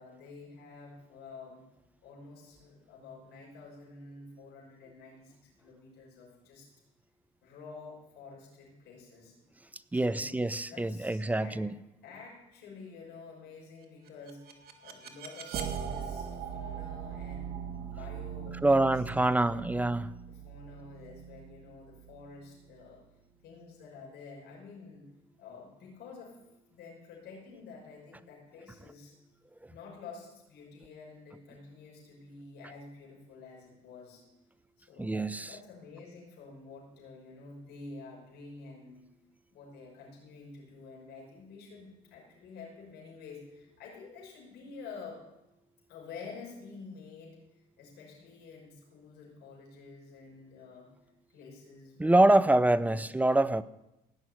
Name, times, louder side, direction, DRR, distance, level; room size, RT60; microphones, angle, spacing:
voice 1, 0.0-1.6 2.0-6.7 7.4-9.3 9.9-10.3 10.7-11.6 12.0-19.8 20.3-23.0 23.4-25.1 25.4-26.4 26.7-29.1 29.7-34.2 34.8-39.0 39.5-45.2 45.9-50.9 51.3-53.1, left 4 dB, 75° left, -2 dB, 6.0 m, -49 dB
voice 2, 9.9-11.8 18.6-20.1 35.0-35.5 52.0-53.6, right 2 dB, 10° right, 16 dB, 0.5 m, -25 dB
sound 1, 14.1-23.0, right 7 dB, 65° right, 1.8 m, -41 dB
17.0 x 6.2 x 9.6 m, 0.94 s
cardioid pair, 110°, 17 cm